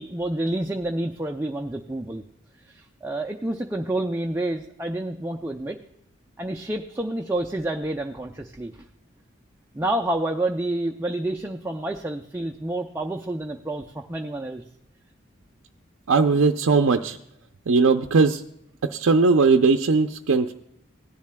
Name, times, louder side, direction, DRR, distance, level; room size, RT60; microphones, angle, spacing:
voice 1, 0.0-2.2 2.7-5.8 6.4-8.7 9.7-14.6, right 1 dB, 10° right, 3 dB, 0.4 m, -29 dB
voice 2, 16.1-17.2 17.7-18.4 18.9-20.5, right 4 dB, 90° right, 4 dB, 0.5 m, -19 dB
18.0 x 10.5 x 2.2 m, 0.76 s
head